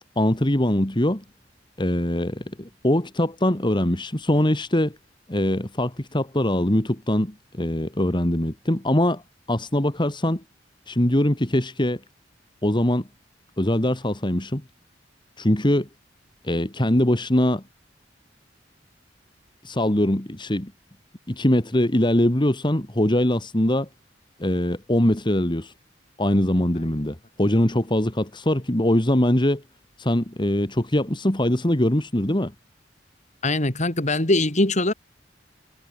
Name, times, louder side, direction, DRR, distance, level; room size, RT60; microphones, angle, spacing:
voice 1, 0.2-1.2 1.8-5.0 5.3-9.2 9.5-10.4 10.9-12.0 12.6-13.1 13.6-14.6 15.4-15.9 16.4-17.6 19.6-20.7 21.3-23.9 24.4-25.7 26.2-29.6 30.0-32.5, left 1 dB, 25° left, 2.3 m, -22 dB
voice 2, 33.4-34.9, left 2 dB, 40° left, 3.5 m, -21 dB
head